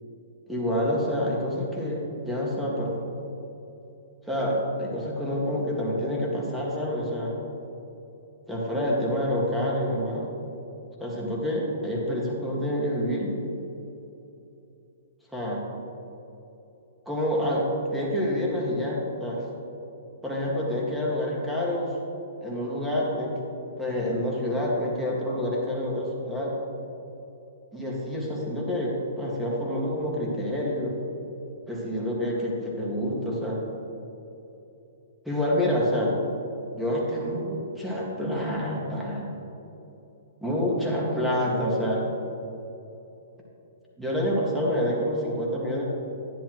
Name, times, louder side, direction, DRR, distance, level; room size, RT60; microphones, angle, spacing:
voice 1, 0.5-3.0 4.3-7.3 8.5-10.3 11.0-13.4 15.3-15.6 17.1-19.4 20.2-22.0 22.4-23.3 23.8-26.5 27.7-31.0 31.7-33.6 35.3-36.1 36.7-39.4 40.4-42.1 44.0-45.8, equal, ahead, -5 dB, 1.9 m, -27 dB
11.0 x 9.8 x 3.1 m, 3.0 s
hypercardioid pair, 140°, 0 cm